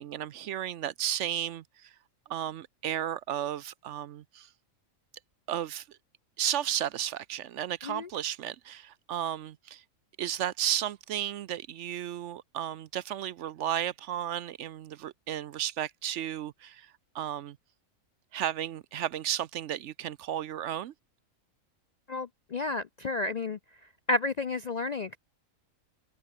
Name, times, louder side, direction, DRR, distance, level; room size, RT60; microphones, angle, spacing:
voice 1, 0.0-1.9 2.3-4.5 5.5-6.0 6.4-9.8 10.2-17.6 18.3-20.9, right 11 dB, 65° right, 0.9 m, -33 dB
voice 2, 22.1-23.6 24.1-25.2, left 2 dB, 50° left, 0.5 m, -31 dB
omnidirectional pair, 1.4 m